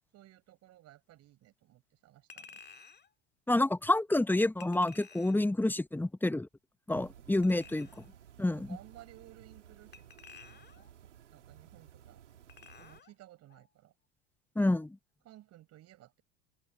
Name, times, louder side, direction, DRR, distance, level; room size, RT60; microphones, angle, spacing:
voice 1, 0.0-2.6 7.4-8.0 8.5-10.9 11.3-12.2 12.8-13.9 15.2-16.2, right 14 dB, 45° right, 6.4 m, -57 dB
Chink clink, 2.3-3.1 4.6-5.5 7.3-8.1 9.9-10.9 12.5-13.1 13.5-13.6, left 5 dB, 30° left, 2.3 m, -54 dB
voice 2, 3.5-6.5 6.9-7.9 8.4-8.7 14.5-15.0, left 2 dB, 5° left, 1.3 m, -28 dB
sound 1, 6.9-13.0, right 10 dB, 75° right, 3.0 m, -56 dB
open air
figure-of-eight pair, 75°, 36 cm